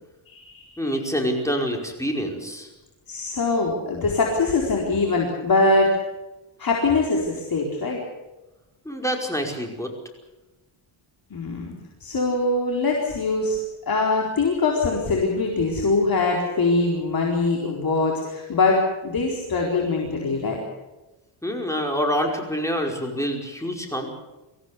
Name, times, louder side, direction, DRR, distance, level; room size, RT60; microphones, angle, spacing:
voice 1, 0.3-1.0 3.1-5.9 6.6-8.0 11.3-11.7 12.0-13.6 13.9-20.6, left 3 dB, 45° left, -1 dB, 4.3 m, -23 dB
voice 2, 0.8-2.7 8.9-9.9 21.4-24.1, equal, 5° left, 2 dB, 5.2 m, -26 dB
24.5 x 16.5 x 8.4 m, 1.1 s
cardioid pair, 105°, 48 cm